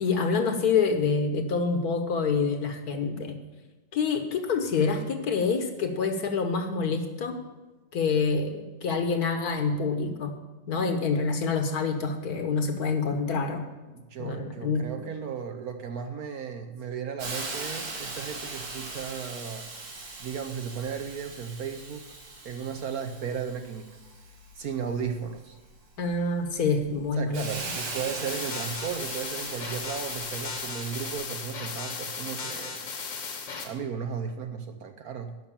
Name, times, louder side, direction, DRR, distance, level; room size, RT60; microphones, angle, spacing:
voice 1, 0.0-3.4 3.9-7.4 7.9-10.3 10.7-13.6 14.2-14.9 26.0-27.4, left 4 dB, 60° left, 6 dB, 1.5 m, -27 dB
voice 2, 13.9-19.7 20.2-22.1 22.4-23.9 24.6-25.6 27.2-32.9 33.6-35.4, right 7 dB, 65° right, 7 dB, 1.0 m, -35 dB
Hiss, 17.2-31.1, right 3 dB, 85° right, 2.6 m, -40 dB
sound 1, 28.3-33.6, left 5 dB, 75° left, 2.1 m, -36 dB
11.0 x 5.8 x 8.6 m, 1.2 s
omnidirectional pair, 2.0 m